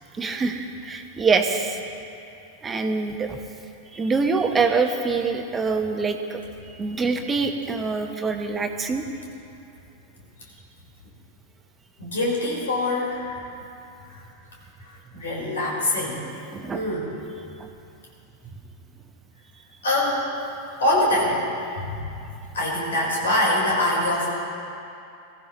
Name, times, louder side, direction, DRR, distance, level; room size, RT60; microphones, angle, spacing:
voice 1, 0.2-1.8 2.6-3.4 3.9-6.4 6.6-9.0 16.5-16.8 17.6-17.7, right 4 dB, 20° right, 5 dB, 1.2 m, -25 dB
voice 2, 12.0-13.4 14.1-14.2 15.1-16.3 16.7-17.1 19.8-20.3 20.8-21.4 21.8-22.1 22.5-24.3, left 1 dB, 65° left, -3 dB, 4.4 m, -24 dB
22.5 x 15.0 x 3.1 m, 2.7 s
figure-of-eight pair, 90°, 0 cm